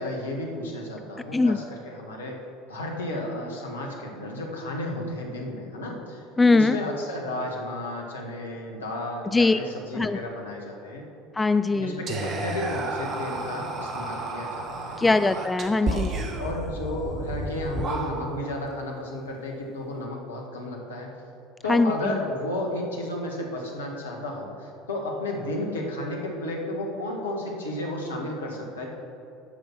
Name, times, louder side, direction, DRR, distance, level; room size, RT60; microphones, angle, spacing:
voice 1, 0.0-2.3 2.7-6.2 6.5-11.0 11.7-15.1 15.8-16.0 16.4-21.1 21.6-28.9, left 1 dB, 75° left, 0 dB, 1.5 m, -33 dB
voice 2, 6.4-6.8 9.3-9.6 9.9-10.2 11.3-12.0 15.0-16.1 21.7-22.2, left 3 dB, 15° left, 11 dB, 0.3 m, -21 dB
Whispering, 12.1-18.5, right 2 dB, 35° right, 1.2 m, -32 dB
12.5 x 5.3 x 5.9 m, 2.6 s
figure-of-eight pair, 70°, 0 cm